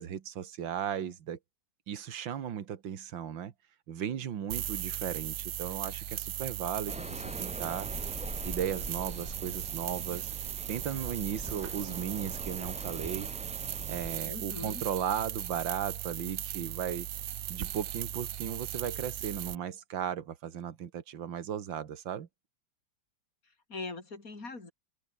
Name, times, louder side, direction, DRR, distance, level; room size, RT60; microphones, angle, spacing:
voice 1, 0.0-1.4 1.9-3.5 3.9-7.9 8.4-10.3 10.7-13.3 13.9-17.1 17.5-22.3, right 9 dB, 75° right, 2.2 m, -36 dB
sound 1, 4.5-19.5, right 11 dB, 60° right, 1.0 m, -38 dB
sound 2, 6.9-14.2, equal, 5° right, 3.8 m, -43 dB
voice 2, 14.2-14.8 23.7-24.7, left 3 dB, 45° left, 4.8 m, -41 dB
omnidirectional pair, 2.1 m